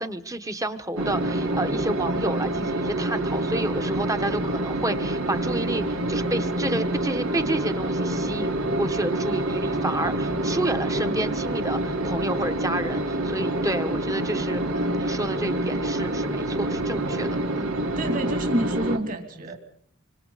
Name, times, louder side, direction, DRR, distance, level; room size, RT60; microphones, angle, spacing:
voice 1, 0.0-17.7, right 1 dB, 15° right, 9 dB, 1.2 m, -30 dB
sound 1, 1.0-19.0, right 1 dB, 80° right, 2.6 m, -27 dB
voice 2, 18.0-19.6, equal, 40° right, 6 dB, 2.8 m, -28 dB
26.5 x 25.0 x 4.1 m, 0.66 s
head